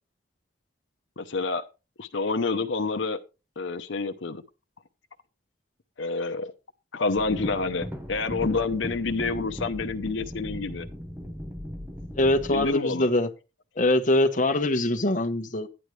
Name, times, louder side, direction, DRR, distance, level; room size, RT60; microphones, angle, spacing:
voice 1, 1.2-1.6 2.0-3.2 3.6-4.4 6.0-6.5 6.9-10.9 12.5-13.1, left 3 dB, 85° left, 0.7 m, -28 dB
sound 1, 7.2-12.7, equal, 10° right, 0.7 m, -38 dB
voice 2, 12.2-13.3 13.8-15.7, left 1 dB, 40° left, 1.0 m, -23 dB
12.0 x 9.8 x 3.2 m
head